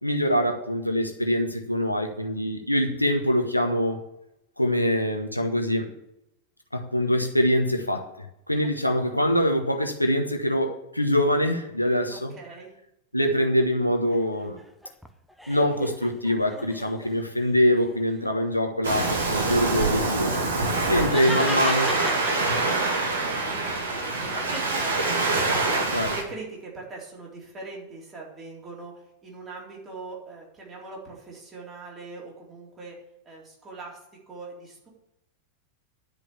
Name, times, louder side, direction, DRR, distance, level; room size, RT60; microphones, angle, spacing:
voice 1, 0.0-4.0 4.6-5.9 6.7-12.3 13.1-14.6 15.5-20.4 20.9-21.9 25.9-26.1, equal, 90° left, 4 dB, 1.3 m, -24 dB
voice 2, 12.1-12.7 21.0-23.1 23.5-25.6 26.1-28.9 29.2-34.0 34.3-34.9, right 3 dB, 20° right, -3 dB, 3.7 m, -41 dB
sound 1, 14.1-17.2 17.7-18.4 20.1-23.2 23.6-25.8, equal, ahead, 0.8 m, -38 dB
Waves surf, 18.8-26.2, right 3 dB, 65° right, 2.0 m, -25 dB
10.5 x 5.3 x 8.5 m, 0.84 s
figure-of-eight pair, 90°, 0 cm